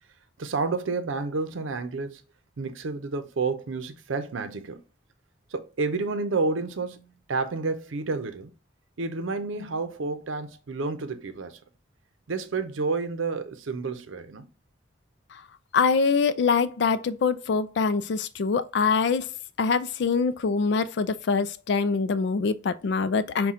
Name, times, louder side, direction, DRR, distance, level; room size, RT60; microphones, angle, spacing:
voice 1, 0.4-2.2 2.6-4.8 5.5-8.5 9.0-11.6 12.3-14.4, right 4 dB, 90° right, 0.6 m, -30 dB
voice 2, 15.7-19.3 19.6-23.5, left 5 dB, 60° left, 0.3 m, -24 dB
5.6 x 2.2 x 3.7 m
head